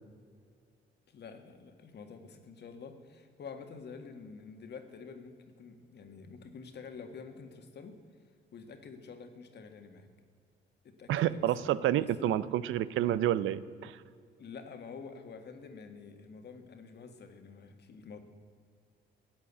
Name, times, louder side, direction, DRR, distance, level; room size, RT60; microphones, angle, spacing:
voice 1, 1.1-10.1 10.8-12.4 14.4-18.2, left 5 dB, 55° left, 7 dB, 1.8 m, -48 dB
voice 2, 11.1-14.0, right 12 dB, 80° right, 17 dB, 0.6 m, -29 dB
15.5 x 8.9 x 8.3 m, 2.2 s
cardioid pair, 90°, 20 cm